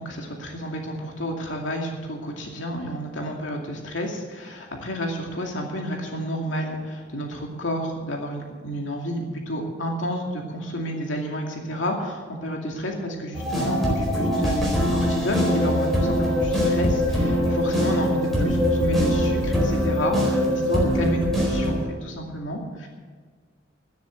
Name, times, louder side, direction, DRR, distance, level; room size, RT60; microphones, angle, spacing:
voice 1, 0.0-22.9, equal, 75° left, 1 dB, 2.4 m, -30 dB
sound 1, 13.3-21.8, equal, ahead, 4.3 m, -22 dB
12.5 x 10.5 x 8.0 m, 1.5 s
head